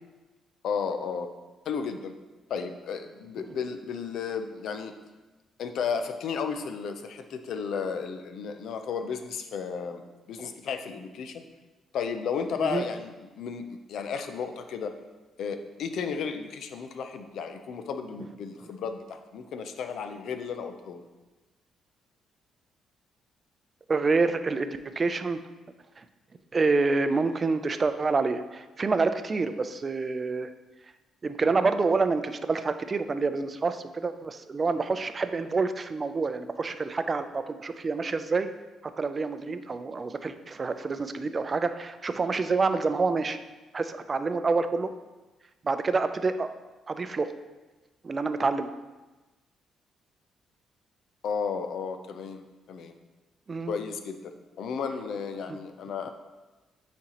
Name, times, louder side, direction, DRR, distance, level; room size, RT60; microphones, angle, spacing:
voice 1, 0.6-1.3 1.7-2.1 2.5-4.9 5.6-11.4 11.9-14.9 15.4-21.1 51.2-52.9 53.7-56.1, left 6 dB, 70° left, 7 dB, 0.5 m, -33 dB
voice 2, 23.9-25.4 26.5-30.5 31.2-38.5 39.0-43.4 43.7-44.9 45.6-46.5 46.9-47.3 48.0-48.7 53.5-53.8 55.5-55.6, right 4 dB, 35° right, 10 dB, 0.4 m, -27 dB
8.7 x 4.2 x 2.9 m, 1.2 s
cardioid pair, 90°, 0 cm